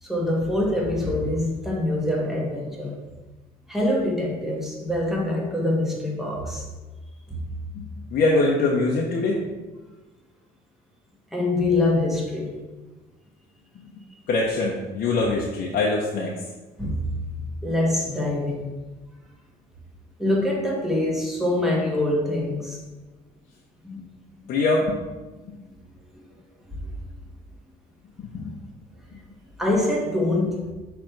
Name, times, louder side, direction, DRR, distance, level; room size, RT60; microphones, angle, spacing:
voice 1, 0.0-3.0 3.7-6.6 7.3-7.4 11.3-12.6 16.8-17.3 17.6-18.9 20.2-22.8 23.8-24.0 24.4-24.5 26.7-26.8 29.6-30.7, left 1 dB, ahead, -3 dB, 1.4 m, -25 dB
voice 2, 8.1-9.4 14.3-16.3 24.5-25.0 25.5-25.6 28.2-28.6, left 3 dB, 60° left, -2 dB, 0.9 m, -23 dB
6.3 x 3.4 x 4.5 m, 1.2 s
cardioid pair, 110°, 17 cm